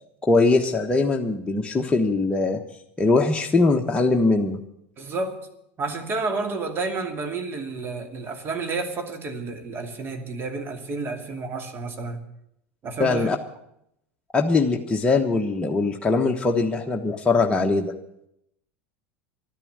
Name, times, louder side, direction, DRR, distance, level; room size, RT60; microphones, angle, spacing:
voice 1, 0.2-2.6 3.0-4.6 13.0-13.4 14.3-17.9, left 3 dB, 15° left, 1 dB, 1.3 m, -21 dB
voice 2, 5.0-5.4 5.8-12.2 12.8-13.3, right 3 dB, 35° right, 5 dB, 2.6 m, -30 dB
12.5 x 10.5 x 9.5 m, 0.77 s
hypercardioid pair, 80°, 7 cm